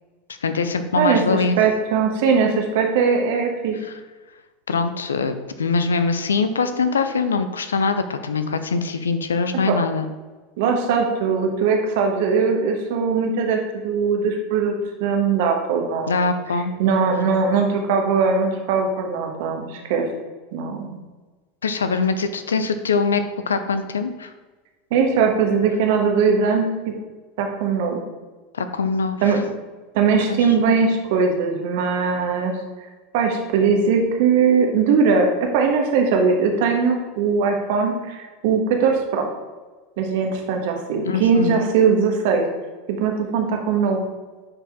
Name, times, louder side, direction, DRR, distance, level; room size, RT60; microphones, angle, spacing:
voice 1, 0.4-1.6 4.7-10.1 16.1-16.7 21.6-24.3 28.5-29.2 30.3-30.5 41.0-41.6, left 4 dB, 80° left, 9 dB, 0.6 m, -23 dB
voice 2, 0.9-3.8 9.7-9.8 10.6-14.7 15.0-16.3 16.8-20.0 20.5-21.0 24.9-26.7 27.4-28.0 29.2-29.4 29.9-32.5 33.1-39.3 40.0-42.4 42.9-44.0, right 5 dB, 60° right, 2 dB, 1.5 m, -20 dB
9.8 x 4.9 x 3.6 m, 1.3 s
figure-of-eight pair, 85°, 0 cm